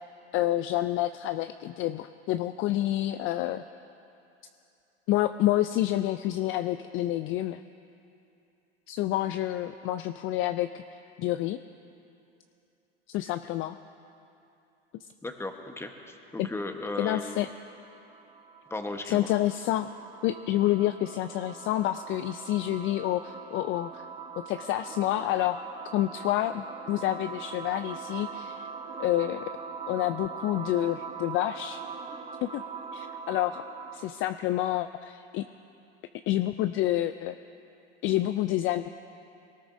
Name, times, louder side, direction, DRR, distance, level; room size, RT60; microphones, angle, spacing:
voice 1, 0.3-3.6 5.1-7.6 8.9-10.8 11.2-11.6 13.1-13.7 16.4-16.5 17.0-17.5 19.0-19.9 20.2-24.1 24.5-25.6 25.9-28.7 29.0-29.4 29.9-31.8 32.4-32.6 32.9-33.6 33.9-35.4 36.3-37.3 38.0-38.9, left 14 dB, 40° left, 11 dB, 0.4 m, -28 dB
voice 2, 15.2-17.5 18.7-19.3, left 2 dB, 10° left, 5 dB, 1.1 m, -36 dB
sound 1, 17.5-34.2, right 6 dB, 20° right, 0.8 m, -42 dB
21.0 x 18.5 x 2.7 m, 2.7 s
hypercardioid pair, 100°, 31 cm